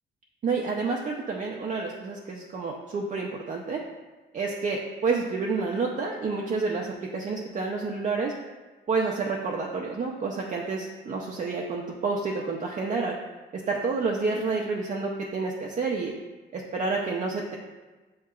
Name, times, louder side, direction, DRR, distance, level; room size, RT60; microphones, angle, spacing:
voice 1, 0.4-3.8 4.3-8.3 8.9-13.1 13.7-16.1 16.5-17.6, right 4 dB, 40° right, 0 dB, 0.5 m, -29 dB
7.1 x 2.8 x 2.3 m, 1.2 s
cardioid pair, 90°, 20 cm